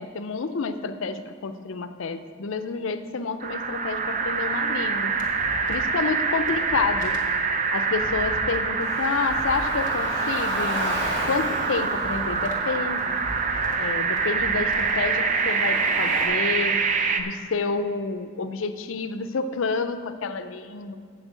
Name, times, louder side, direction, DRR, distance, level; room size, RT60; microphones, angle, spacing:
voice 1, 0.0-5.1 5.7-7.2 7.7-13.2 13.8-16.8 17.2-21.0, left 4 dB, 80° left, 10 dB, 0.5 m, -29 dB
sound 1, 3.4-17.2, right 5 dB, 40° right, 0.5 m, -25 dB
sound 2, 4.8-6.1 6.3-9.9 10.3-12.7 13.0-15.0, left 1 dB, 40° left, 1.4 m, -40 dB
Car, 8.8-16.3, equal, 70° right, 2.2 m, -33 dB
7.9 x 6.3 x 7.6 m, 2.1 s
head